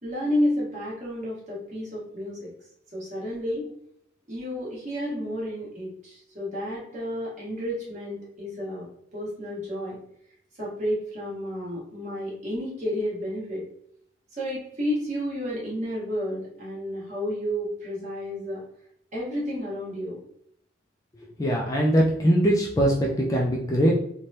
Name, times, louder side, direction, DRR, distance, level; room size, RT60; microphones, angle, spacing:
voice 1, 0.0-2.5 2.9-3.7 4.3-10.0 10.6-13.6 14.3-18.6 19.1-20.2, equal, 40° right, -6 dB, 1.2 m, -31 dB
voice 2, 21.4-23.9, equal, 15° left, -2 dB, 0.3 m, -21 dB
3.2 x 2.2 x 2.7 m, 0.71 s
head